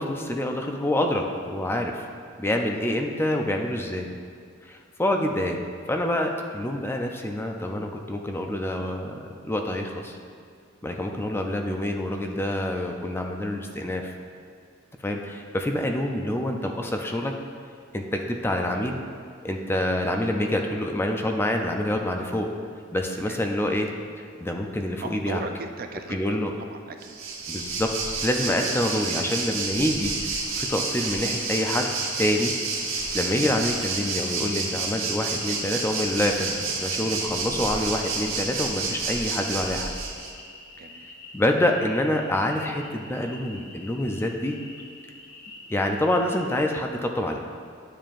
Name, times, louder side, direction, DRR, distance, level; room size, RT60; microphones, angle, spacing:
voice 1, 0.0-2.0 2.4-4.1 4.7-5.6 5.9-9.2 9.4-10.2 10.8-14.0 15.0-17.3 17.9-19.0 19.4-22.5 22.9-23.9 24.4-25.4 26.1-26.5 27.5-27.9 28.2-31.9 32.2-32.6 33.1-39.9 41.3-44.6 45.7-47.4, left 1 dB, 10° left, 3 dB, 0.5 m, -26 dB
voice 2, 25.0-27.2 40.8-41.1, right 3 dB, 50° right, 6 dB, 0.5 m, -37 dB
Waves surf, 27.0-40.3, right 3 dB, 70° right, 1.2 m, -30 dB
sound 1, 28.5-46.6, left 2 dB, 80° left, 1.5 m, -46 dB
11.0 x 7.3 x 2.5 m, 2.2 s
head